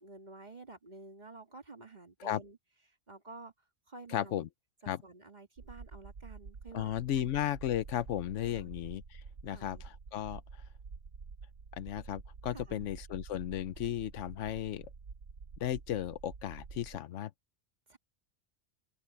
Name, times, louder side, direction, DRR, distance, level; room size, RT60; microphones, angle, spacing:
voice 1, 0.0-2.6 2.9-3.5 3.9-4.5 4.8-7.3 8.4-8.7 9.5-9.8 12.5-12.9 17.9-18.0, right 3 dB, 35° right, 2.1 m, -51 dB
voice 2, 4.1-4.5 4.9-5.0 6.7-9.8 10.1-10.4 11.8-14.9 15.6-17.3, left 11 dB, 90° left, 1.0 m, -35 dB
sound 1, 5.6-17.0, right 5 dB, 70° right, 1.5 m, -49 dB
omnidirectional pair, 1.2 m